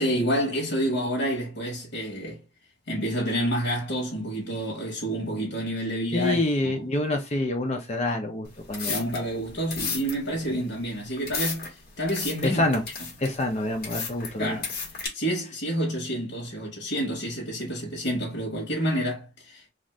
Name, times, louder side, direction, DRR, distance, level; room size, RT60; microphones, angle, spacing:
voice 1, 0.0-2.4 2.9-6.4 6.6-6.7 8.9-12.6 14.4-14.7 15.1-19.7, equal, 85° left, 1.0 m, -28 dB
voice 2, 6.1-9.0 10.5-10.6 12.4-12.8 13.2-14.6, left 1 dB, 35° left, 0.7 m, -27 dB
sound 1, 8.4-15.1, left 5 dB, 50° left, 1.3 m, -35 dB
2.6 x 2.6 x 3.2 m
head